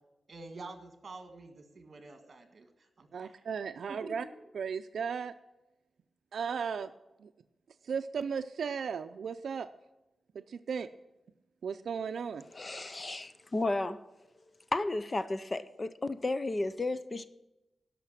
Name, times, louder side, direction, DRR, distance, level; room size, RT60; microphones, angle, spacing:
voice 1, 0.3-3.5 3.9-4.5, right 3 dB, 45° right, 7 dB, 1.7 m, -48 dB
voice 2, 3.1-4.2 4.5-5.3 6.3-6.9 7.2-7.3 7.9-9.7 10.3-10.9 11.6-12.4, right 6 dB, 80° right, 10 dB, 0.4 m, -35 dB
voice 3, 12.5-14.0 14.7-17.3, left 2 dB, 25° left, 13 dB, 0.5 m, -33 dB
12.0 x 5.8 x 7.5 m, 0.97 s
wide cardioid pair, 145°, 0 cm